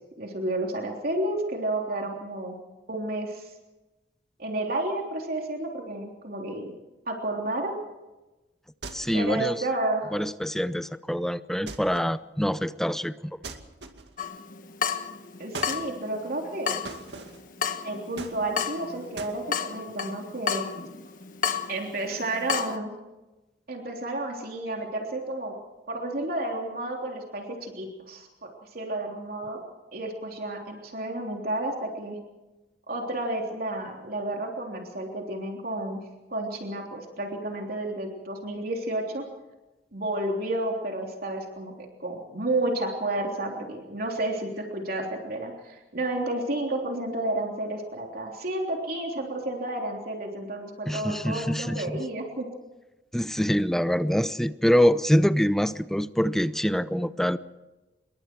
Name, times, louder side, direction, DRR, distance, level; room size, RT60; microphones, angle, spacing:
voice 1, 0.2-2.6 2.9-3.5 4.4-6.7 7.1-7.8 9.1-10.2 15.4-16.8 17.8-20.7 21.7-22.9 23.7-25.6 25.9-32.2 32.9-36.0 36.3-39.2 39.9-52.5, right 1 dB, 60° right, 1 dB, 3.4 m, -31 dB
sound 1, 8.8-9.4 11.7-12.2 13.4-14.3 15.5-15.9 16.9-17.5 18.2-18.8 19.2-19.4, right 3 dB, 75° right, 2.4 m, -40 dB
voice 2, 8.9-9.6 10.1-13.1 50.9-52.0 53.1-57.4, equal, ahead, 13 dB, 0.6 m, -25 dB
Water tap faucet / Drip, 14.2-22.8, left 7 dB, 50° left, 1.4 m, -33 dB
28.0 x 22.5 x 4.6 m, 1.1 s
head